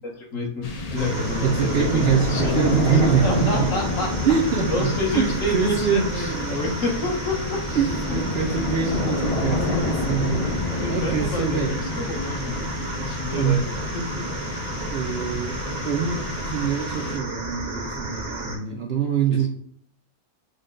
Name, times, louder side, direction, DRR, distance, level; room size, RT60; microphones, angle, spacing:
voice 1, 0.0-2.6 2.9-4.2 4.6-8.2 8.8-9.0 10.7-14.3 19.3-19.5, left 1 dB, 65° left, 0 dB, 1.5 m, -29 dB
sound 1, 0.6-17.6, left 3 dB, 90° left, 0.3 m, -29 dB
sound 2, 1.0-18.6, right 2 dB, 85° right, 1.6 m, -33 dB
voice 2, 1.4-3.6 4.3-4.9 5.1-6.6 7.8-11.8 13.3-13.6 14.1-14.2 14.9-15.5 15.8-19.5, right 7 dB, 60° right, 1 dB, 0.7 m, -24 dB
6.4 x 2.2 x 3.7 m, 0.62 s
omnidirectional pair, 1.5 m